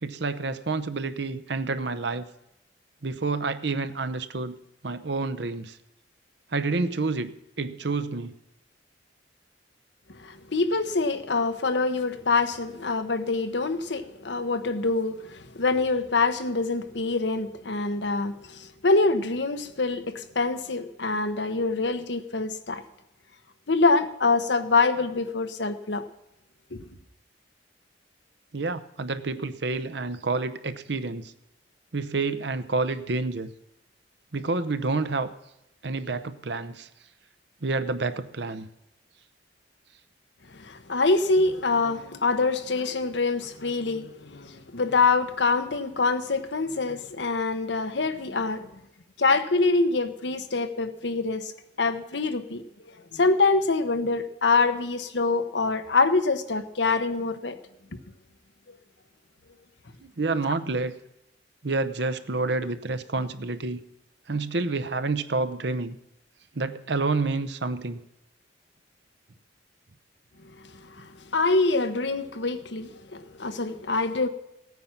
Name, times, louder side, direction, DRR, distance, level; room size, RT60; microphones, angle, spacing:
voice 1, 0.0-2.3 3.0-4.6 4.8-5.7 6.5-7.3 7.6-8.3 28.5-31.3 31.9-33.5 34.3-35.3 35.8-36.9 37.6-38.7 60.0-60.9 61.6-63.8 64.3-66.0 66.6-68.0, right 3 dB, 65° right, 0.8 m, -28 dB
voice 2, 10.2-22.8 23.7-26.0 26.7-26.8 40.5-48.7 49.2-51.4 51.8-52.6 53.1-57.6 60.4-60.5 70.8-74.3, left 3 dB, 70° left, 1.1 m, -25 dB
16.0 x 9.4 x 5.9 m
head